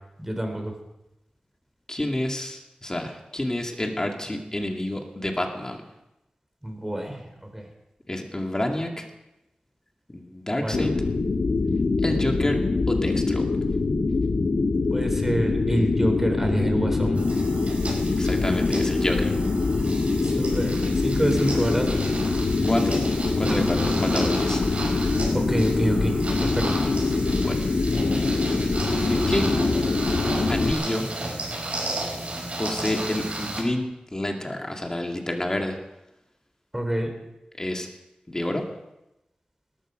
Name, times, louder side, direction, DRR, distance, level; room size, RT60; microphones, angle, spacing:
voice 1, 0.2-0.7 6.6-7.7 10.6-11.0 14.9-17.2 20.2-20.7 21.0-21.9 25.3-26.7 36.7-37.1, right 1 dB, 10° right, 4 dB, 3.6 m, -27 dB
voice 2, 1.9-5.8 8.1-9.1 10.1-11.0 12.0-12.6 12.9-13.5 18.2-19.3 22.6-23.0 23.4-24.6 27.3-27.6 29.0-29.5 30.5-31.1 32.6-33.9 34.1-35.8 37.6-37.9 38.3-38.7, left 1 dB, 25° left, 2 dB, 2.3 m, -28 dB
sound 1, 10.7-30.7, left 3 dB, 65° left, 1.1 m, -24 dB
sound 2, 17.2-33.6, right 2 dB, 50° right, 5.6 m, -33 dB
19.0 x 14.0 x 5.1 m, 0.92 s
wide cardioid pair, 90°, 3 cm